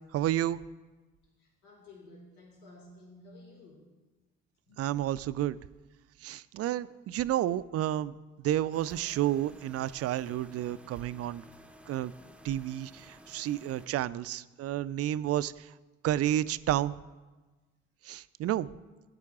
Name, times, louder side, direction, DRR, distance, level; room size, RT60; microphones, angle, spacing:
voice 1, 0.1-0.6 4.8-5.6 6.2-8.1 8.4-11.4 11.9-12.1 12.4-15.7 16.0-16.9 18.0-18.7, right 12 dB, 45° right, 17 dB, 0.4 m, -30 dB
voice 2, 1.4-3.9 4.7-5.0, left 2 dB, 80° left, 0 dB, 1.9 m, -53 dB
sound 1, 8.7-13.9, equal, 5° right, 0.7 m, -54 dB
17.5 x 9.6 x 2.4 m, 1.2 s
hypercardioid pair, 45°, 34 cm